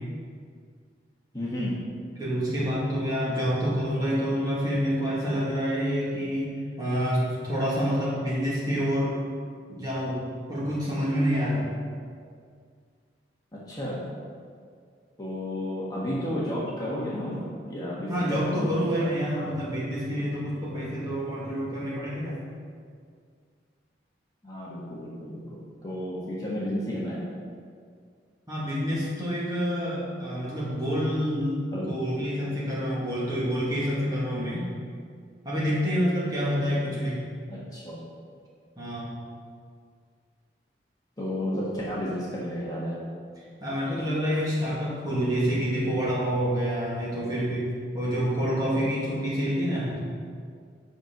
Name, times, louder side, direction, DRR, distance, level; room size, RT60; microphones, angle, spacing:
voice 1, 1.3-1.8 13.7-14.0 15.2-18.7 19.0-19.1 24.4-27.2 31.7-31.9 37.5-38.0 41.2-43.0, equal, 20° left, -7 dB, 1.5 m, -32 dB
voice 2, 2.2-9.2 9.7-10.2 10.5-11.7 18.1-22.4 28.5-34.6 35.4-37.3 38.8-39.1 43.6-49.9, equal, 20° right, -8 dB, 2.4 m, -27 dB
8.7 x 6.2 x 5.3 m, 2.1 s
head